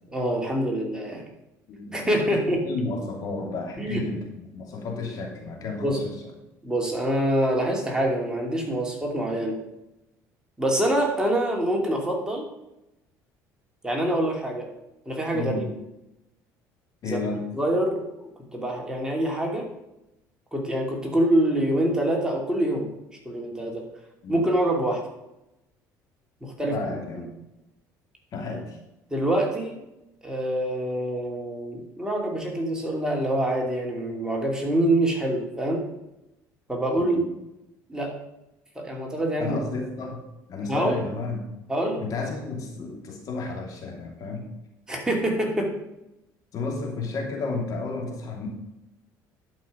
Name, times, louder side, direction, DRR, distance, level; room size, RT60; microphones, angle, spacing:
voice 1, 0.1-1.2 1.9-2.6 3.8-4.0 5.8-6.0 6.6-9.6 10.6-12.5 13.8-14.7 15.1-15.7 17.0-17.2 17.5-19.7 20.5-22.9 23.2-23.8 24.3-25.0 26.4-26.7 29.1-29.8 30.2-35.8 36.7-37.2 37.9-38.1 38.8-39.6 40.6-41.0 41.7-42.0 44.9-45.7, right 1 dB, 10° right, 0 dB, 2.7 m, -25 dB
voice 2, 1.7-6.1 15.3-15.7 17.0-17.4 24.2-24.5 26.6-27.3 28.3-28.8 37.0-37.3 39.4-40.2 40.5-41.4 42.0-44.5 46.5-48.5, left 3 dB, 55° left, 1 dB, 2.8 m, -32 dB
11.5 x 5.5 x 5.2 m, 0.91 s
supercardioid pair, 95°, 7 cm